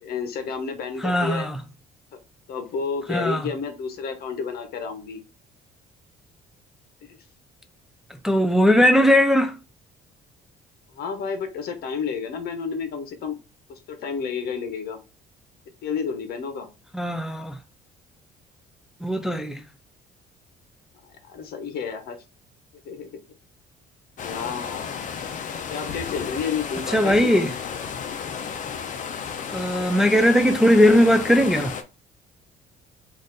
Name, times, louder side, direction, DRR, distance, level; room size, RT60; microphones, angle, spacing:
voice 1, 0.0-1.5 2.5-5.2 10.9-13.4 13.7-15.0 15.8-16.7 21.3-22.2 22.8-23.2 24.2-25.1 25.7-27.3, left 6 dB, 65° left, 1.0 m, -31 dB
voice 2, 1.0-1.5 3.1-3.4 8.2-9.5 16.9-17.6 19.0-19.6 26.9-27.5 29.5-31.7, equal, 5° right, 0.4 m, -19 dB
sound 1, 24.2-31.8, left 7 dB, 50° left, 0.7 m, -33 dB
3.9 x 2.5 x 3.9 m
cardioid pair, 110°, 17 cm